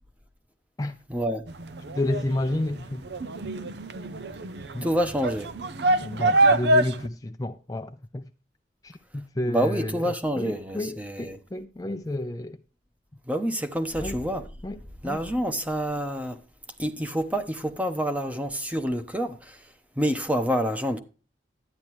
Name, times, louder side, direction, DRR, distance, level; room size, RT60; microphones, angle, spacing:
voice 1, 1.1-1.5 4.8-5.5 9.5-11.4 13.3-14.5 15.0-16.4 16.8-21.0, equal, 10° right, 0.9 m, -28 dB
sound 1, 1.5-7.1, right 2 dB, 65° right, 0.6 m, -25 dB
voice 2, 2.0-3.0 4.7-4.9 6.0-8.2 8.8-9.9 10.4-12.6 14.0-14.2 14.6-14.8 15.0-15.2, left 1 dB, 20° left, 0.5 m, -30 dB
12.0 x 9.6 x 3.1 m
head